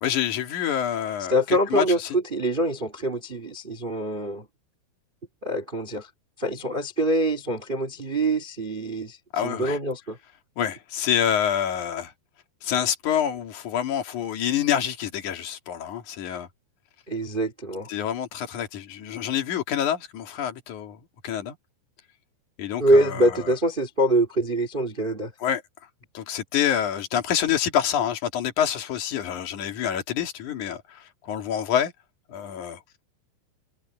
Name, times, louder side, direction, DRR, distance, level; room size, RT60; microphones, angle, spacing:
voice 1, 0.0-1.8 9.3-9.8 10.6-12.1 12.6-16.5 17.9-21.0 21.2-21.5 22.6-23.5 25.4-25.6 26.1-31.9 32.3-32.8, left 9 dB, 50° left, 3.3 m, -27 dB
voice 2, 1.3-4.5 5.4-6.1 6.4-9.2 9.4-10.2 17.1-17.9 22.8-25.3, right 1 dB, 75° right, 0.4 m, -24 dB
omnidirectional pair, 5.2 m